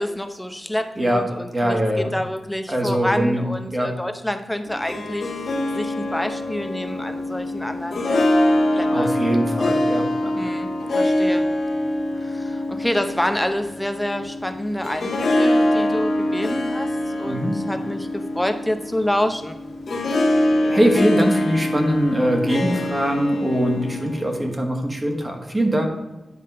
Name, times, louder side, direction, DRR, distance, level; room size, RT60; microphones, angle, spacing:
voice 1, 0.0-5.3 5.7-9.1 10.4-10.7 11.0-11.4 12.2-19.6, left 1 dB, 5° left, 7 dB, 0.7 m, -27 dB
voice 2, 1.0-1.3 1.5-2.2 2.7-3.9 8.9-10.3 17.2-17.5 20.6-25.9, equal, 20° right, 2 dB, 1.4 m, -22 dB
Harp, 4.7-24.5, left 1 dB, 70° left, 1.4 m, -24 dB
9.6 x 3.6 x 5.4 m, 1.1 s
wide cardioid pair, 90°, 0 cm